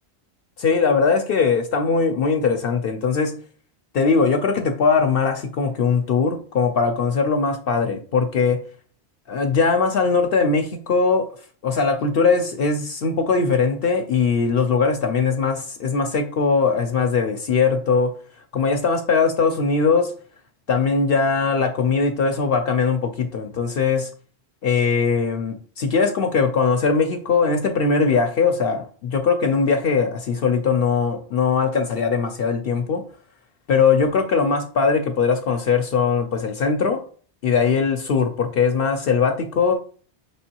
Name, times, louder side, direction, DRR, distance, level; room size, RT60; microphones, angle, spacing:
voice 1, 0.6-3.4 3.9-8.6 9.3-11.3 11.6-18.1 18.5-20.1 20.7-24.1 24.6-33.0 33.7-37.0 37.4-39.7, left 5 dB, 60° left, 4 dB, 0.7 m, -20 dB
5.2 x 3.4 x 2.8 m, 0.43 s
omnidirectional pair, 1.2 m